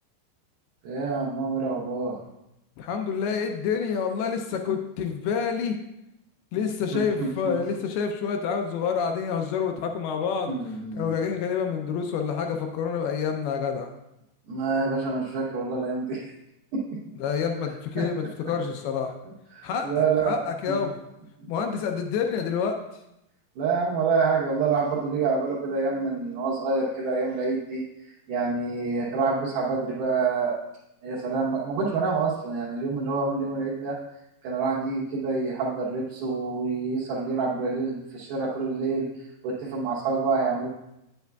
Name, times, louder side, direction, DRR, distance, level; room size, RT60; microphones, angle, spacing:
voice 1, 0.8-2.2 6.9-7.6 10.5-11.1 14.5-16.3 16.7-17.0 18.0-18.1 19.5-20.4 20.7-20.8 23.6-27.8 28.3-30.6 31.0-34.0 34.4-40.7, right 4 dB, 70° right, -6 dB, 2.6 m, -27 dB
voice 2, 2.8-5.8 6.5-10.6 10.9-13.9 17.2-19.1 19.6-19.9 20.3-21.0 21.5-22.8, left 6 dB, 80° left, 4 dB, 2.3 m, -28 dB
9.3 x 8.1 x 2.3 m, 0.87 s
omnidirectional pair, 5.0 m